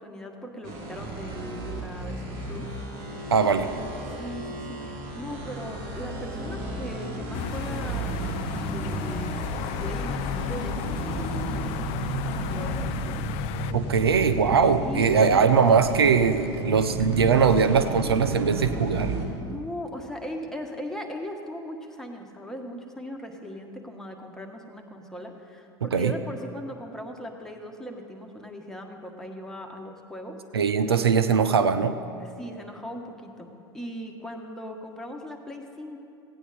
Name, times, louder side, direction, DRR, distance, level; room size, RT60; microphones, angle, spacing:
voice 1, 0.0-2.7 4.2-13.2 14.8-15.4 19.3-30.3 32.2-33.5 33.7-36.0, equal, 5° left, 2 dB, 1.5 m, -39 dB
sound 1, 0.6-19.3, right 1 dB, 55° right, 2.3 m, -33 dB
voice 2, 3.3-3.7 13.7-19.2 25.9-26.1 30.5-32.0, right 6 dB, 90° right, 10 dB, 0.5 m, -21 dB
sound 2, 7.3-13.7, left 13 dB, 55° left, 0.4 m, -34 dB
16.0 x 9.1 x 4.3 m, 2.8 s
hypercardioid pair, 80°, 13 cm